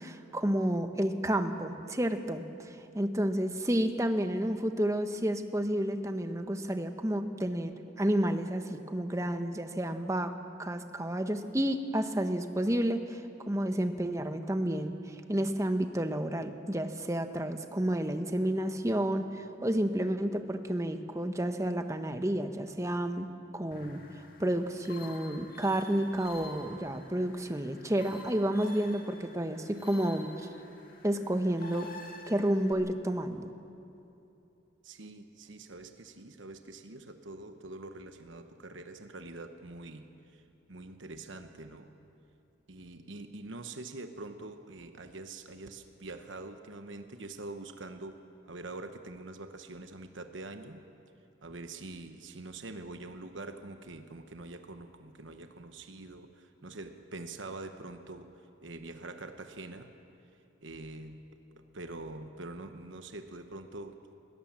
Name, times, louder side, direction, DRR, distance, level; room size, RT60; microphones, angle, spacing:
voice 1, 0.0-2.4 2.9-10.3 10.6-13.2 13.5-14.9 15.3-23.3 23.5-24.0 24.4-30.5 31.0-31.9 32.3-33.5, right 1 dB, 15° right, 8 dB, 0.9 m, -30 dB
sound 1, 23.7-32.7, left 2 dB, 45° left, 2.1 m, -49 dB
voice 2, 34.8-40.1 40.3-40.4 40.7-42.0 42.7-48.2 48.5-50.8 51.4-58.3 58.6-59.9 60.6-61.2 61.6-63.9, right 2 dB, 75° right, 7 dB, 1.1 m, -44 dB
20.5 x 17.5 x 7.4 m, 2.8 s
head